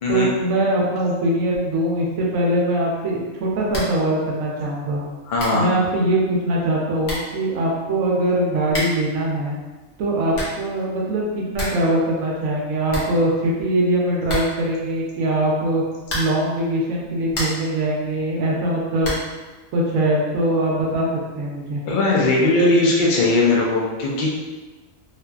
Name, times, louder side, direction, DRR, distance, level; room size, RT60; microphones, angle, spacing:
voice 1, 0.1-5.0 5.5-9.6 10.0-15.8 16.1-19.1 19.7-21.1 21.4-21.8, right 1 dB, 80° right, -3 dB, 1.0 m, -22 dB
sound 1, 3.7-4.1 4.3-4.4 5.0-5.1 5.4-5.7 6.6-6.7 7.0-7.4 8.7-9.1 10.1-10.7 11.1-11.2 11.3-11.9 12.2-12.3 12.5-12.6 12.9-13.7 14.2-14.8 16.0-16.5 17.0-17.8 19.0-19.4, left 1 dB, 50° left, 0.8 m, -29 dB
voice 2, 5.3-5.7 21.9-24.3, left 2 dB, 90° left, -3 dB, 0.4 m, -19 dB
2.8 x 2.4 x 2.3 m, 1.2 s
omnidirectional pair, 1.4 m